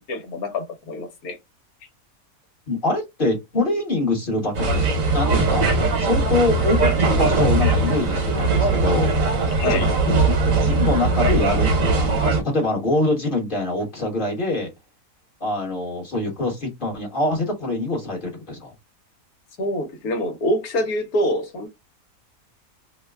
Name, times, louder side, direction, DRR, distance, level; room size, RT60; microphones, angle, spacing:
voice 1, 0.1-1.4 9.6-9.9 19.6-21.7, left 1 dB, 70° left, 1.4 m, -25 dB
voice 2, 2.7-4.8 5.1-5.6 6.0-9.1 9.6-9.8 10.2-14.7 15.4-18.7, left 2 dB, 35° left, 1.3 m, -24 dB
sound 1, 4.5-12.4, right 3 dB, 60° right, 1.3 m, -20 dB
3.0 x 2.2 x 3.3 m
omnidirectional pair, 1.6 m